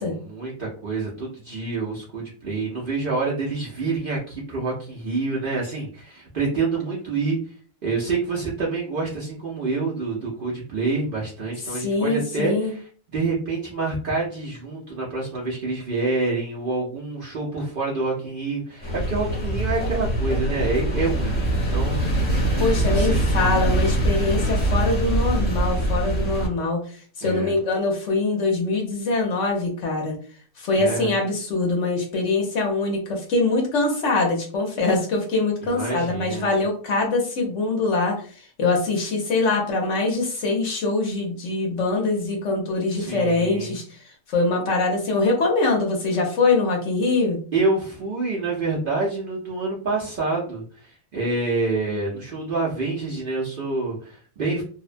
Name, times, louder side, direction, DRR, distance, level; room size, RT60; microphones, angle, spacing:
voice 1, 0.0-7.4 7.8-22.4 22.8-23.3 27.2-27.5 30.7-31.1 35.6-36.6 42.9-43.7 47.5-54.6, right 3 dB, 75° right, -5 dB, 0.5 m, -27 dB
voice 2, 11.7-12.8 22.6-26.8 27.2-30.2 30.6-38.2 38.6-47.4, left 3 dB, 60° left, 0 dB, 0.8 m, -23 dB
sound 1, 18.8-26.5, right 1 dB, 5° left, 0.8 m, -23 dB
2.7 x 2.1 x 2.5 m, 0.42 s
omnidirectional pair, 1.7 m